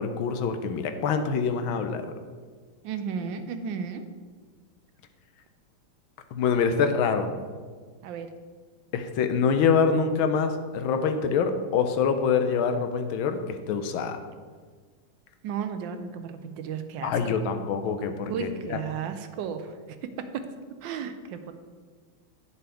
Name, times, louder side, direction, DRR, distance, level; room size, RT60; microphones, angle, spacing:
voice 1, 0.0-2.1 6.3-7.3 8.9-13.4 13.7-14.2 17.0-18.3 18.7-18.8, left 6 dB, 75° left, 8 dB, 1.4 m, -25 dB
voice 2, 2.8-4.0 8.0-8.3 15.4-17.4 18.3-19.8 20.0-20.5 20.8-21.5, right 6 dB, 75° right, 8 dB, 1.1 m, -34 dB
8.9 x 6.9 x 3.4 m, 1.5 s
omnidirectional pair, 2.4 m